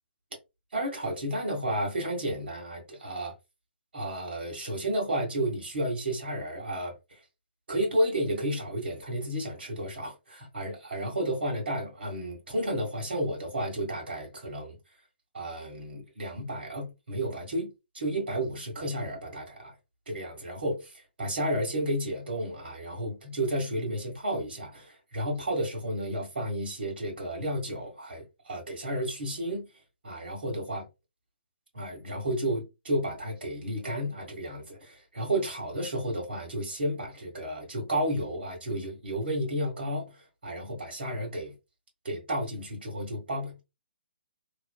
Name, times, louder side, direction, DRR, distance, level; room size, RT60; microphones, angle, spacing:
voice 1, 0.7-3.3 3.9-7.2 7.7-14.8 15.3-19.7 20.1-29.7 30.0-30.9 31.7-40.1 40.4-41.5 42.0-43.6, right 1 dB, 60° right, 1.8 m, -32 dB
3.1 x 2.5 x 2.3 m
figure-of-eight pair, 130°, 6 cm